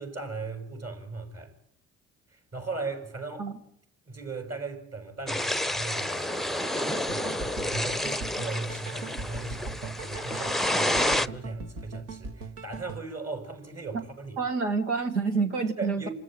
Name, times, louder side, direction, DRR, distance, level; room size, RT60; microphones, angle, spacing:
voice 1, 0.0-1.5 2.5-3.5 4.1-14.4 15.4-15.5 15.8-16.1, right 3 dB, 45° right, 6.4 m, -38 dB
sound 1, 5.3-11.3, left 1 dB, ahead, 0.8 m, -29 dB
sound 2, 6.6-13.0, right 4 dB, 65° right, 2.2 m, -40 dB
voice 2, 14.4-16.1, right 4 dB, 85° right, 1.8 m, -27 dB
28.0 x 14.0 x 9.0 m
figure-of-eight pair, 45°, 35 cm